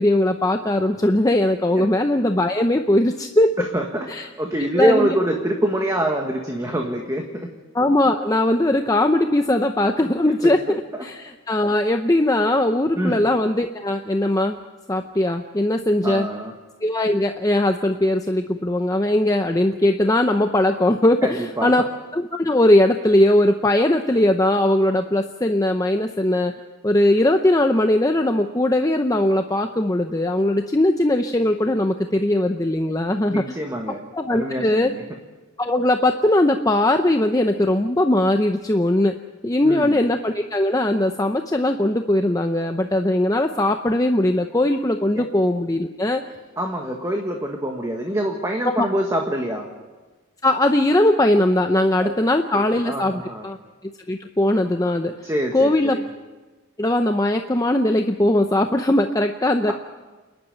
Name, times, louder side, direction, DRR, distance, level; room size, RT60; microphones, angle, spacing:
voice 1, 0.0-3.5 4.1-4.3 4.6-5.1 7.7-14.6 14.9-16.3 16.8-21.9 22.1-26.5 26.8-33.5 34.1-34.9 35.6-39.1 39.4-46.2 48.6-48.9 50.4-53.6 53.8-55.3 55.5-56.0 56.8-59.7, left 1 dB, 15° left, 5 dB, 0.6 m, -20 dB
voice 2, 3.6-4.1 4.4-7.5 10.4-10.7 12.9-13.3 16.0-16.5 21.2-21.7 33.3-34.0 34.3-35.0 39.6-40.0 45.1-45.2 46.6-49.7 52.0-52.1 52.5-53.5 55.2-56.0, right 1 dB, 15° right, 2 dB, 1.5 m, -25 dB
28.5 x 11.0 x 9.3 m, 1.2 s
head